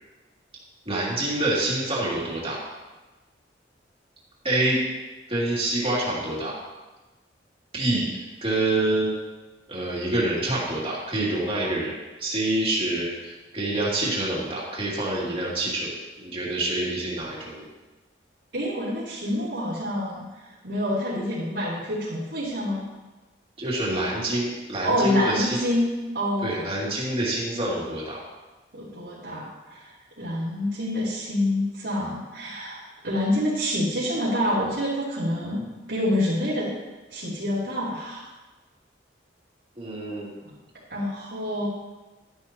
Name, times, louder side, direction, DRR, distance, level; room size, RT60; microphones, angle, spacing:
voice 1, 0.9-2.6 4.4-4.8 5.3-6.5 7.7-8.1 8.4-9.1 9.7-11.9 12.2-17.7 23.6-25.6 26.4-28.2 39.8-40.3, right 1 dB, 30° right, -5 dB, 2.6 m, -26 dB
voice 2, 18.5-20.2 20.6-22.9 24.8-26.6 28.7-29.9 30.2-36.7 37.1-38.3 40.9-41.7, left 1 dB, 90° right, -12 dB, 3.2 m, -27 dB
11.5 x 10.5 x 2.9 m, 1.2 s
head